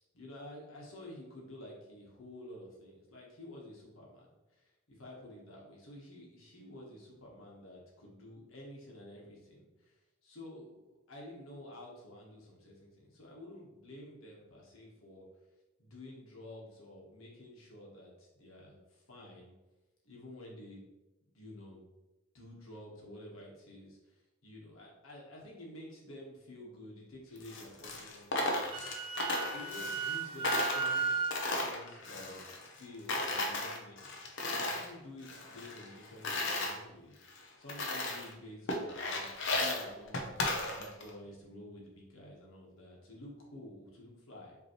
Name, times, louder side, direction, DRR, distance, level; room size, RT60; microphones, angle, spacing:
voice 1, 0.1-9.9 10.2-15.3 15.8-19.5 20.0-20.8 21.3-21.9 22.3-28.7 29.5-37.2 37.6-44.6, left 1 dB, 85° left, -2 dB, 1.3 m, -51 dB
Coin (dropping), 27.4-30.2 30.4-32.8 33.1-34.9 35.2-36.7 37.3-37.4 37.7-38.3 38.7-41.1, left 2 dB, 65° left, 0.7 m, -35 dB
Wind instrument woodwind instrument, 28.4-31.4, right 5 dB, 25° right, 0.4 m, -35 dB
5.2 x 3.0 x 3.0 m, 1.0 s
head